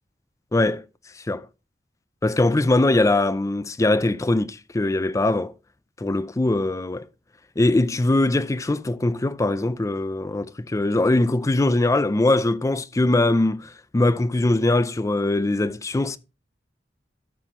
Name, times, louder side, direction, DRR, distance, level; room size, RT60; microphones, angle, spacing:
voice 1, 0.5-0.8 1.3-1.5 2.2-5.5 6.0-7.1 7.6-16.2, left 2 dB, 20° left, 0.4 m, -21 dB
13.0 x 5.9 x 3.0 m
head